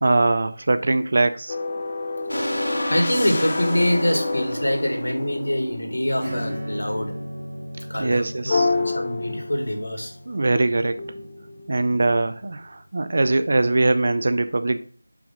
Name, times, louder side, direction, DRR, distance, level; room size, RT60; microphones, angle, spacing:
voice 1, 0.0-1.6 8.0-8.7 10.3-11.0 11.7-14.8, right 2 dB, 45° right, 10 dB, 0.5 m, -21 dB
sound 1, 1.5-5.6 8.5-10.0 10.5-12.3, left 3 dB, 25° left, 0.6 m, -29 dB
sound 2, 2.3-7.6, equal, 85° left, 1.0 m, -30 dB
voice 2, 2.9-7.1 7.9-10.1, left 1 dB, 70° left, 4 dB, 1.9 m, -25 dB
Acoustic guitar / Strum, 6.2-12.4, equal, 25° right, 3.5 m, -36 dB
5.9 x 4.9 x 3.5 m, 0.42 s
figure-of-eight pair, 170°, 0 cm